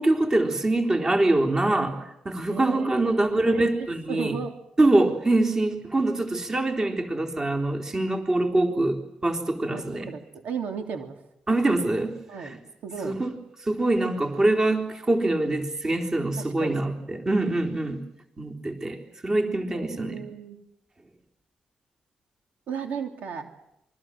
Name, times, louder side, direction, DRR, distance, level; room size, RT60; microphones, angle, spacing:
voice 1, 0.0-4.4 4.8-10.1 11.5-12.6 13.0-13.3 13.7-18.0 18.4-20.2, right 2 dB, 25° right, 3 dB, 3.8 m, -24 dB
voice 2, 2.5-4.5 9.7-11.2 12.3-12.6 12.8-13.2 16.4-16.8 19.7-20.6 22.7-23.5, right 6 dB, 75° right, 4 dB, 3.5 m, -35 dB
27.5 x 23.0 x 7.7 m, 0.82 s
cardioid pair, 125°, 3 cm